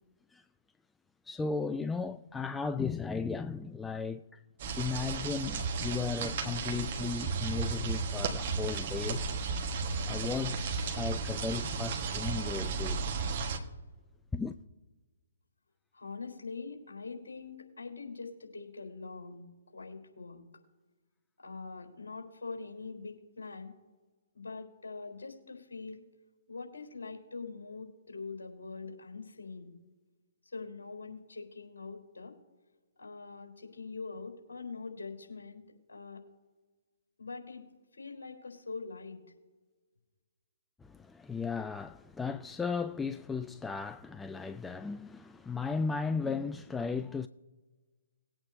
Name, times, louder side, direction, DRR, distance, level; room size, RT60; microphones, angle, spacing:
voice 1, 1.3-4.2 4.8-9.2 10.1-13.0 14.3-14.6 40.9-47.3, left 5 dB, 10° left, 0.3 m, -35 dB
sound 1, 4.6-13.6, right 4 dB, 45° right, 1.4 m, -34 dB
voice 2, 15.9-20.4 21.4-23.7 24.3-26.0 26.5-29.7 30.5-32.3 33.0-35.6 35.9-36.2 37.2-37.6 38.0-39.2, left 4 dB, 65° left, 3.9 m, -43 dB
20.5 x 8.8 x 2.7 m
figure-of-eight pair, 130°, 0 cm